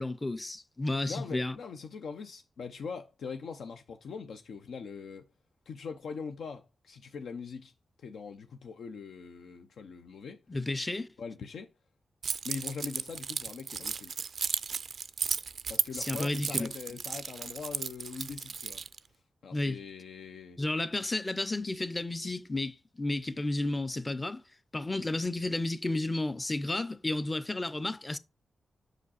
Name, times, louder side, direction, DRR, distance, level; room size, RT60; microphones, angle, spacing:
voice 1, 0.0-1.6 10.5-11.1 15.9-16.7 19.5-19.8 20.6-24.4 24.7-28.2, left 2 dB, 20° left, 0.5 m, -32 dB
voice 2, 0.9-5.3 5.7-7.7 8.0-10.4 11.2-11.7 12.4-14.2 15.7-18.8 19.4-20.6, left 5 dB, 85° left, 0.6 m, -42 dB
Keys jangling, 12.2-19.0, right 5 dB, 65° right, 0.4 m, -35 dB
6.4 x 5.0 x 4.2 m
cardioid pair, 80°, 0 cm